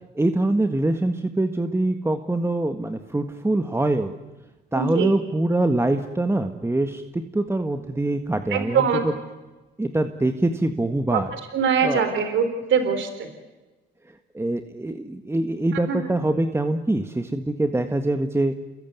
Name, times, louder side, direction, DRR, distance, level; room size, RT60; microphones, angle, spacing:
voice 1, 0.1-4.1 4.7-9.1 9.8-11.3 11.8-12.0 14.3-18.5, right 2 dB, 15° right, 7 dB, 1.7 m, -24 dB
voice 2, 4.7-5.1 8.5-9.0 11.1-13.3 15.9-16.0, right 6 dB, 75° right, 9 dB, 3.8 m, -23 dB
29.0 x 21.5 x 9.5 m, 1.2 s
cardioid pair, 90°, 20 cm